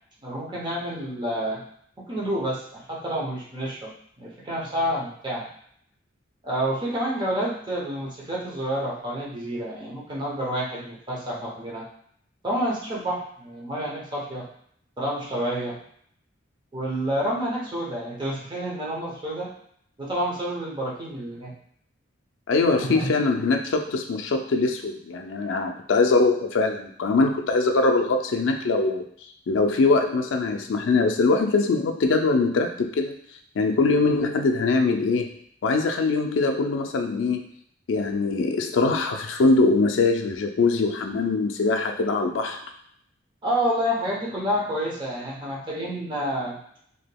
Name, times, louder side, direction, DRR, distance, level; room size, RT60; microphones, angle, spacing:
voice 1, 0.2-1.6 2.1-3.9 4.2-5.5 6.4-11.8 12.4-14.5 15.0-15.8 16.7-19.5 20.0-21.5 22.8-23.1 43.4-46.6, equal, 25° right, -4 dB, 0.7 m, -29 dB
voice 2, 22.5-29.1 29.5-33.2 33.6-35.3 35.6-37.5 37.9-42.6, left 3 dB, 70° left, 4 dB, 0.4 m, -22 dB
3.5 x 2.8 x 2.2 m, 0.66 s
head